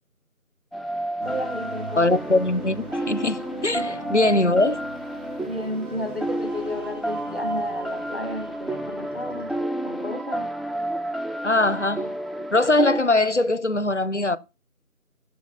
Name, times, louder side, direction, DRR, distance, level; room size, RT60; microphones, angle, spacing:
sound 1, 0.7-13.0, right 1 dB, ahead, 0.4 m, -31 dB
voice 1, 1.2-2.1 3.7-4.0 5.4-9.5 9.8-10.5, left 1 dB, 40° right, 1.3 m, -33 dB
sound 2, 1.2-9.6, equal, 75° right, 2.0 m, -40 dB
voice 2, 2.0-4.8 11.4-12.1 12.5-14.4, left 2 dB, 55° left, 0.5 m, -21 dB
7.0 x 5.3 x 4.7 m
figure-of-eight pair, 180°, 44 cm